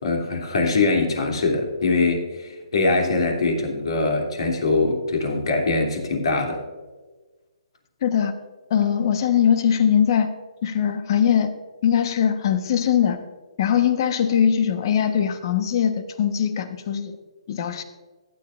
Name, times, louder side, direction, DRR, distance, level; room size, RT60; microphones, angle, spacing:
voice 1, 0.0-6.6, left 3 dB, 60° left, 2 dB, 2.9 m, -22 dB
voice 2, 8.0-8.3 8.7-10.3 10.6-11.5 11.8-13.2 13.6-17.2 17.5-17.8, left 8 dB, 45° left, 9 dB, 1.2 m, -21 dB
15.5 x 10.5 x 2.5 m, 1.3 s
figure-of-eight pair, 135°, 3 cm